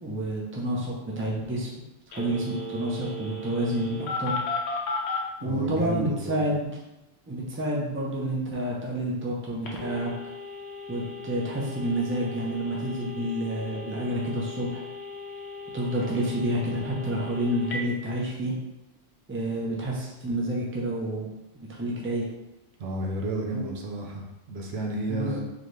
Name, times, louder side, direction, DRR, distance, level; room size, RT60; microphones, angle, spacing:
voice 1, 0.0-1.7 2.1-4.4 5.4-6.8 7.3-10.1 10.9-14.8 15.7-18.5 19.3-21.3 21.5-22.2 23.5-23.7 25.1-25.4, right 1 dB, 15° right, -3 dB, 0.6 m, -29 dB
Telephone, 2.1-5.2 9.6-17.8, left 2 dB, 80° left, 1.0 m, -36 dB
voice 2, 5.4-6.5 22.8-25.4, right 2 dB, 75° right, 0 dB, 1.0 m, -32 dB
4.0 x 2.9 x 3.3 m, 0.96 s
omnidirectional pair, 1.1 m